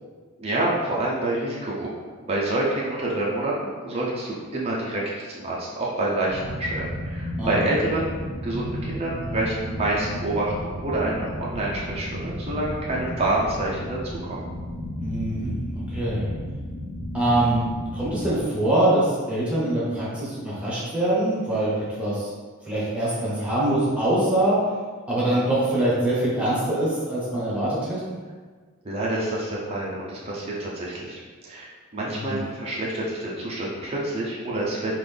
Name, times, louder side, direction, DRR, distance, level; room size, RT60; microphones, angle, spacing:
voice 1, 0.4-1.9 2.2-8.1 8.4-14.4 28.8-34.9, right 2 dB, 30° right, -5 dB, 0.5 m, -27 dB
sound 1, 6.3-18.4, equal, 85° right, 0.8 m, -33 dB
voice 2, 15.0-16.3 17.1-17.6 17.9-22.3 22.7-24.6 25.1-28.0 32.1-32.4, right 1 dB, 5° right, -8 dB, 0.9 m, -24 dB
3.8 x 2.5 x 3.3 m, 1.5 s
head